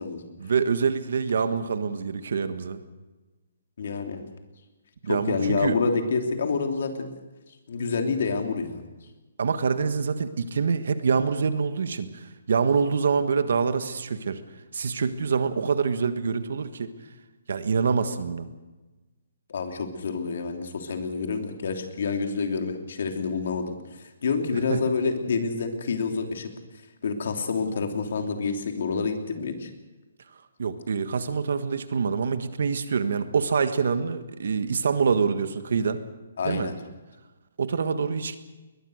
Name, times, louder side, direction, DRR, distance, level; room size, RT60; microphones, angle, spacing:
voice 1, 0.4-2.8 5.0-5.8 9.4-14.4 14.7-16.9 17.5-18.5 30.6-36.0 36.4-36.7 37.6-38.4, right 5 dB, 60° right, 10 dB, 1.5 m, -25 dB
voice 2, 3.8-4.2 5.1-7.1 7.7-8.8 19.5-26.5 27.0-29.7 36.4-36.8, left 4 dB, 55° left, 4 dB, 3.1 m, -28 dB
21.5 x 21.0 x 6.5 m, 1.2 s
hypercardioid pair, 175°, 0 cm